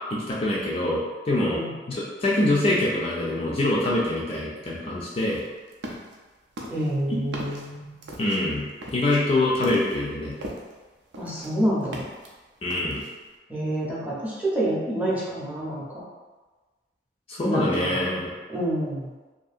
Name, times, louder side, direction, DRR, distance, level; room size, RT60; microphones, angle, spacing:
voice 1, 0.1-1.6 1.9-5.4 7.1-7.2 8.2-8.7 8.9-10.3 12.6-13.0 17.3-18.3, left 1 dB, 35° left, -5 dB, 0.4 m, -24 dB
sound 1, 5.3-6.2 6.6-10.8 11.1-12.3 12.7-13.2, right 1 dB, 90° right, 0.5 m, -38 dB
voice 2, 6.7-8.0 11.2-12.0 13.5-16.0 17.4-18.2 18.5-19.1, right 1 dB, 10° right, -7 dB, 0.7 m, -28 dB
2.7 x 2.7 x 2.4 m, 1.3 s
head